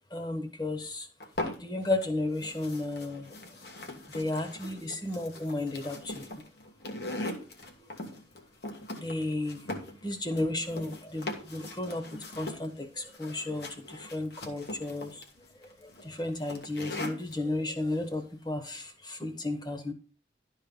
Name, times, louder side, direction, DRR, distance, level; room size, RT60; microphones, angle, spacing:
voice 1, 0.1-1.1 1.4-3.3 4.1-6.3 9.0-9.7 10.0-15.2 15.6-19.9, left 2 dB, 25° left, 6 dB, 1.2 m, -33 dB
sound 1, 1.2-2.0 2.4-17.4, left 1 dB, 70° left, 1.6 m, -41 dB
11.5 x 4.5 x 5.4 m, 0.36 s
head